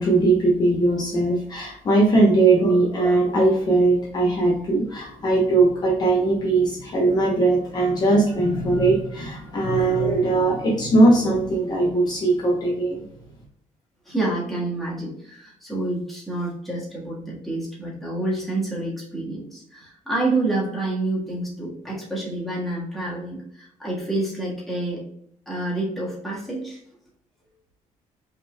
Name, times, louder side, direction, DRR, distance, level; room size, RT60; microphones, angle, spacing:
voice 1, 0.0-13.0, right 2 dB, 30° left, -3 dB, 1.0 m, -20 dB
voice 2, 14.1-25.0 25.5-26.8, right 2 dB, ahead, -6 dB, 1.6 m, -28 dB
5.4 x 3.9 x 2.3 m, 0.71 s
cardioid pair, 180°, 13 cm